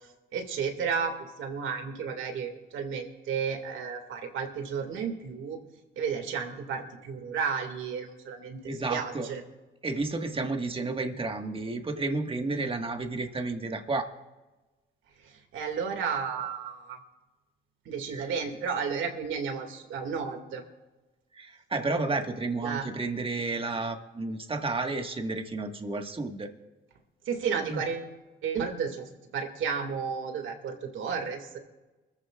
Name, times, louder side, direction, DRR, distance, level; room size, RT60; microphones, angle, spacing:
voice 1, 0.3-5.6 6.0-9.4 15.2-17.0 17.9-20.6 22.6-22.9 27.3-28.1 28.4-29.0 29.3-31.6, right 6 dB, 80° right, 4 dB, 2.2 m, -32 dB
voice 2, 8.6-9.3 9.8-14.1 18.1-18.3 21.4-26.5 27.7-27.8, right 3 dB, 25° right, 5 dB, 1.6 m, -31 dB
25.0 x 14.5 x 2.4 m, 1.1 s
cardioid pair, 90°, 20 cm